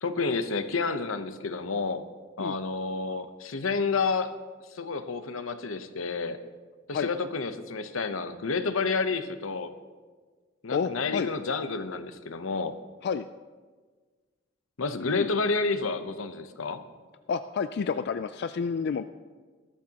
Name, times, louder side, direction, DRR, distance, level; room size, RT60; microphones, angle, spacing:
voice 1, 0.0-2.0 2.4-4.3 4.7-6.4 6.9-9.7 10.6-12.7 14.8-16.8, left 4 dB, 70° left, 10 dB, 0.9 m, -30 dB
voice 2, 10.7-11.3 13.0-13.3 15.0-15.3 17.3-19.0, left 6 dB, 50° left, 10 dB, 0.3 m, -29 dB
20.5 x 12.5 x 2.9 m, 1.4 s
head